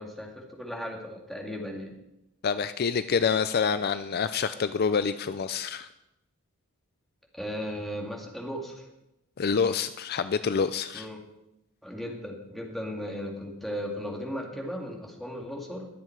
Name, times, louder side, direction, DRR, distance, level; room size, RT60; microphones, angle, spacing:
voice 1, 0.0-1.9 7.3-8.9 10.9-11.2 11.8-15.9, equal, ahead, 0 dB, 2.3 m, -36 dB
voice 2, 2.4-5.9 9.4-11.1, left 6 dB, 50° left, 12 dB, 0.4 m, -27 dB
21.5 x 7.7 x 4.7 m, 0.88 s
head